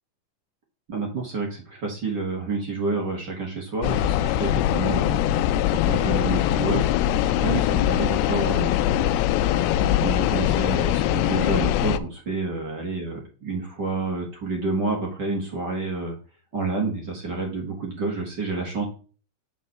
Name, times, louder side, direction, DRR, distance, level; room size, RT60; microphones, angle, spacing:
voice 1, 0.9-5.2 5.6-6.9 7.2-8.7 9.4-16.2 16.5-18.8, right 3 dB, 45° right, 0 dB, 1.5 m, -29 dB
sound 1, 3.8-12.0, left 12 dB, 85° left, 2.5 m, -22 dB
7.4 x 4.3 x 6.7 m, 0.38 s
omnidirectional pair, 4.5 m